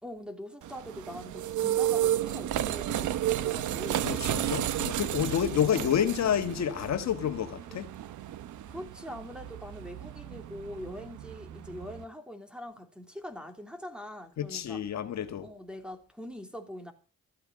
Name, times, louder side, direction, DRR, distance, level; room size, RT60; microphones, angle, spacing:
voice 1, 0.0-4.1 5.7-6.0 8.7-14.8 15.4-16.9, left 1 dB, 5° right, 3.1 m, -43 dB
sound 1, 0.6-12.0, right 12 dB, 75° right, 1.0 m, -33 dB
voice 2, 4.0-7.9 14.4-15.5, left 9 dB, 60° left, 1.7 m, -29 dB
14.5 x 8.6 x 7.5 m
cardioid pair, 90°, 30 cm